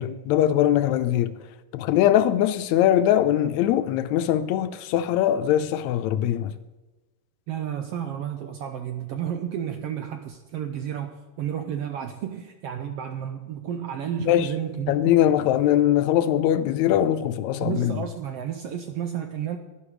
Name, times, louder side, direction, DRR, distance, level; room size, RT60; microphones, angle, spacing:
voice 1, 0.0-1.4 1.7-6.5 14.3-14.5 14.9-18.0, left 11 dB, 80° left, 1.8 m, -21 dB
voice 2, 7.5-15.1 17.6-19.6, right 9 dB, 75° right, 1.4 m, -32 dB
11.0 x 10.5 x 4.9 m
omnidirectional pair, 3.3 m